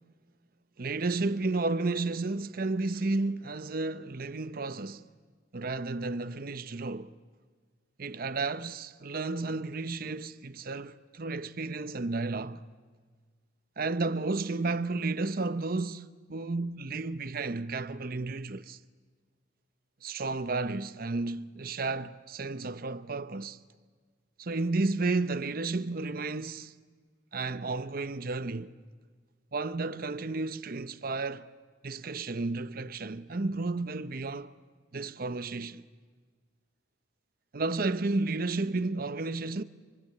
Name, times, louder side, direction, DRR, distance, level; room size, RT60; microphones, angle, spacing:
voice 1, 0.8-5.1 5.5-7.1 8.0-12.6 13.8-18.8 20.0-23.6 24.4-26.7 27.3-28.7 29.5-31.5 31.8-34.5 34.9-35.8 37.5-39.6, right 3 dB, 50° right, 0.8 m, -32 dB
30.0 x 23.5 x 8.5 m
head